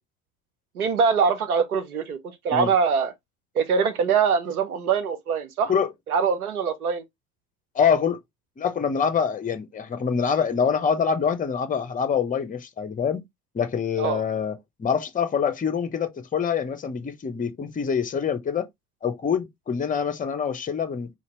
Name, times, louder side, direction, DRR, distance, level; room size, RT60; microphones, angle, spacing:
voice 1, 0.7-2.2 2.4-3.1 3.5-5.7 6.1-7.0 14.0-14.2, right 6 dB, 90° right, 0.8 m, -23 dB
voice 2, 7.7-8.2 8.6-13.2 13.5-18.7 19.0-21.1, left 6 dB, 20° left, 0.7 m, -25 dB
4.2 x 2.8 x 3.0 m
hypercardioid pair, 70°, 43 cm